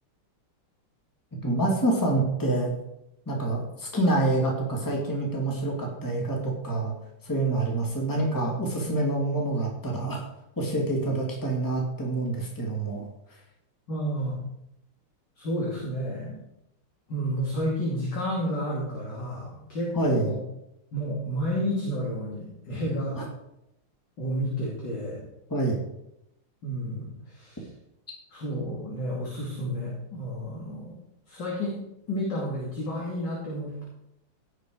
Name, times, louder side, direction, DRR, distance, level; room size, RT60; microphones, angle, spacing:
voice 1, 1.4-2.7 3.3-6.9 7.2-10.2 10.6-13.0 19.9-20.3 23.1-23.2 25.5-25.8, right 2 dB, 10° left, -1 dB, 2.4 m, -26 dB
voice 2, 13.9-14.4 15.4-16.4 17.1-20.4 20.9-23.2 24.2-25.3 26.6-27.7 28.3-30.9 31.3-31.8 32.1-33.8, equal, 50° left, -5 dB, 3.2 m, -31 dB
16.5 x 6.5 x 4.8 m, 0.83 s
omnidirectional pair, 2.4 m